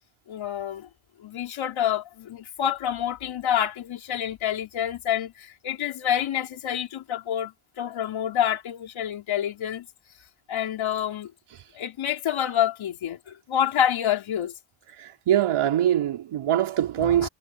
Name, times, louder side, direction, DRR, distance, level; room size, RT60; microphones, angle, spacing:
voice 1, 0.3-0.9 1.2-9.9 10.5-11.3 11.7-14.5 17.0-17.3, left 10 dB, 65° left, 3.9 m, -27 dB
voice 2, 14.9-17.3, right 11 dB, 80° right, 3.9 m, -23 dB
wide cardioid pair, 165°, 50 cm